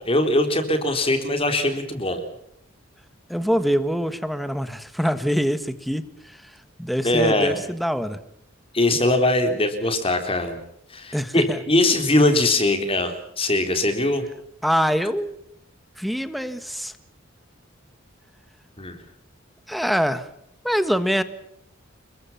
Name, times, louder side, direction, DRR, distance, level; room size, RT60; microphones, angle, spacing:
voice 1, 0.0-2.2 7.0-7.5 8.7-10.6 10.9-14.2 18.8-19.0, left 1 dB, 30° left, 7 dB, 3.7 m, -21 dB
voice 2, 3.3-6.5 6.8-8.2 11.1-11.6 14.6-15.3 16.0-16.9 19.7-20.3 20.6-21.2, equal, ahead, 11 dB, 1.5 m, -24 dB
30.0 x 22.5 x 5.8 m, 0.71 s
head